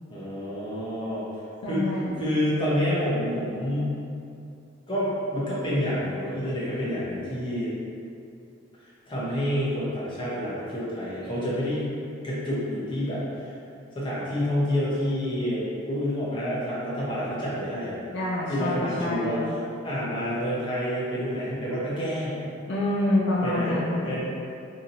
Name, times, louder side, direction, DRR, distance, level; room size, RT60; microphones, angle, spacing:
voice 1, 0.1-1.2 1.6-4.0 4.9-7.7 9.1-11.9 12.2-13.5 13.9-18.0 18.5-19.6 19.8-22.4 23.4-24.5, equal, 25° left, -9 dB, 0.7 m, -28 dB
voice 2, 1.6-2.3 18.1-19.5 22.7-24.1, left 1 dB, 55° left, -6 dB, 0.3 m, -27 dB
2.8 x 2.8 x 2.5 m, 2.6 s
head